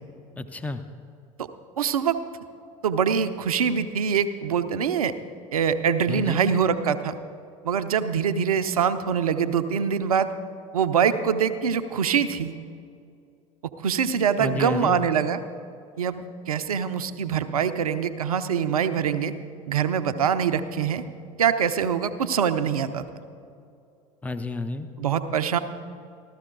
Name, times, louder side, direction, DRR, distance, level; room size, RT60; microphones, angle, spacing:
voice 1, 0.4-0.8 6.1-6.4 14.4-15.0 24.2-24.9, left 2 dB, 10° left, 9 dB, 0.6 m, -30 dB
voice 2, 1.8-2.2 2.8-5.1 5.5-7.1 7.6-10.3 10.7-12.5 13.8-15.4 16.0-19.3 19.7-21.0 21.4-23.1 25.0-25.6, right 7 dB, 85° right, 10 dB, 0.6 m, -24 dB
14.5 x 13.0 x 3.8 m, 2.5 s
hypercardioid pair, 70°, 18 cm